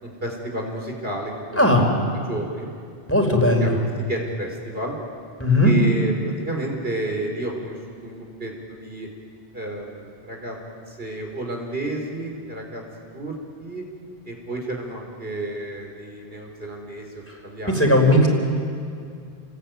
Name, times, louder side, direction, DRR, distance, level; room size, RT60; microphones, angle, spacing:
voice 1, 0.0-1.6 2.3-2.7 3.6-5.0 5.6-7.8 8.0-9.1 9.5-10.6 10.9-12.8 13.1-13.9 14.3-17.8 18.1-18.2, right 1 dB, 65° right, 1 dB, 4.4 m, -31 dB
voice 2, 3.1-3.8 5.4-5.7 17.7-18.3, left 1 dB, 15° left, 2 dB, 4.2 m, -17 dB
29.5 x 21.0 x 9.2 m, 2.4 s
omnidirectional pair, 1.0 m